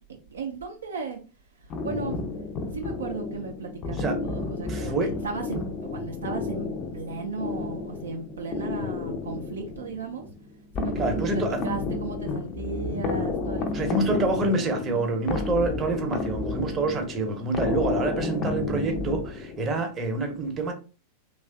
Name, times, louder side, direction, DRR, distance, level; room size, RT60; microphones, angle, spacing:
voice 1, 0.1-1.2 1.5-2.2 2.7-10.3 10.8-14.8, right 4 dB, 70° right, 0.4 m, -36 dB
sound 1, 1.7-19.8, left 3 dB, 35° left, 0.4 m, -31 dB
voice 2, 4.7-5.1 11.0-11.6 13.7-20.7, right 2 dB, 25° right, 0.7 m, -27 dB
3.1 x 2.4 x 2.3 m
figure-of-eight pair, 90°, 0 cm